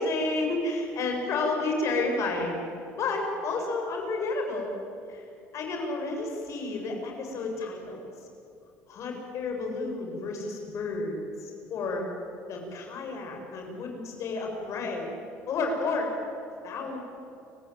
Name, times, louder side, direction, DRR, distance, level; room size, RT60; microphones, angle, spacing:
voice 1, 0.0-2.6 3.0-4.7 5.1-5.3 5.5-8.1 8.9-12.1 12.5-15.1 15.5-16.1 16.6-17.0, left 3 dB, 60° left, 2 dB, 7.2 m, -31 dB
29.5 x 16.0 x 9.1 m, 2.7 s
supercardioid pair, 90°, 6 cm